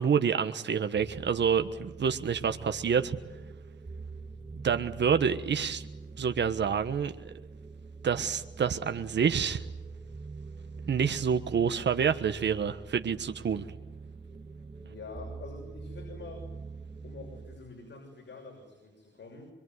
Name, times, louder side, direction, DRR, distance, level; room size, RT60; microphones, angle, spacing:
voice 1, 0.0-3.2 4.6-5.8 6.2-7.3 8.0-9.6 10.8-13.6, right 7 dB, 70° right, 8 dB, 1.3 m, -28 dB
sound 1, 0.9-17.6, right 4 dB, 30° right, 2.7 m, -44 dB
voice 2, 14.8-16.5 17.0-19.5, left 3 dB, 70° left, 2 dB, 6.7 m, -46 dB
25.0 x 23.5 x 9.6 m, 1.0 s
cardioid pair, 90°, 19 cm